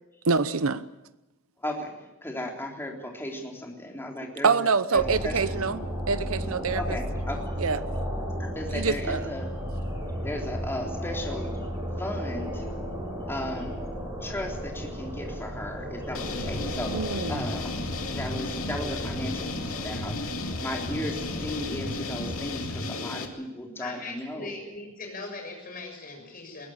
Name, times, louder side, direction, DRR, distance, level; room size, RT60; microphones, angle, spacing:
voice 1, 0.3-0.8 4.4-7.0 7.6-7.8 8.7-9.3 16.9-17.4, right 4 dB, 85° right, 14 dB, 0.9 m, -26 dB
voice 2, 1.6-4.5 4.9-5.4 6.8-7.5 8.4-9.5 10.2-11.5 12.0-12.7 13.3-13.8 14.2-17.0 17.3-17.7 18.2-24.5, left 1 dB, 10° left, 0 dB, 3.7 m, -35 dB
Misc bird calls near helo fly-by, 5.0-22.5, equal, 15° right, 7.0 m, -34 dB
sound 1, 16.1-23.3, left 2 dB, 90° left, 2.4 m, -33 dB
voice 3, 23.8-26.7, left 3 dB, 45° left, 3 dB, 6.8 m, -40 dB
21.5 x 17.0 x 8.9 m, 1.0 s
head